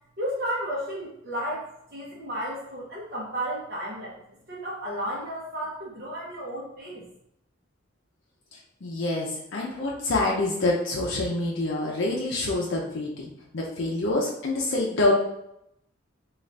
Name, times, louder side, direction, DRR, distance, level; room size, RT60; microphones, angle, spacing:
voice 1, 0.2-4.2 4.5-7.1, equal, 50° right, -6 dB, 0.7 m, -33 dB
voice 2, 8.8-13.3 13.5-15.1, left 2 dB, 65° left, -2 dB, 0.5 m, -26 dB
3.8 x 2.4 x 3.2 m, 0.80 s
head